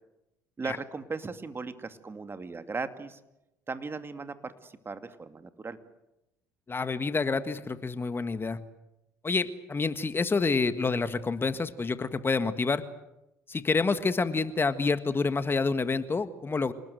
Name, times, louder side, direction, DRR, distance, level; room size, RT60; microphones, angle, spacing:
voice 1, 0.6-3.2 3.7-5.8, right 4 dB, 25° right, 9 dB, 2.5 m, -37 dB
voice 2, 6.7-8.6 9.2-12.8 13.5-16.7, left 4 dB, 25° left, 11 dB, 1.7 m, -28 dB
28.0 x 19.5 x 8.0 m, 0.92 s
hypercardioid pair, 60°, 9 cm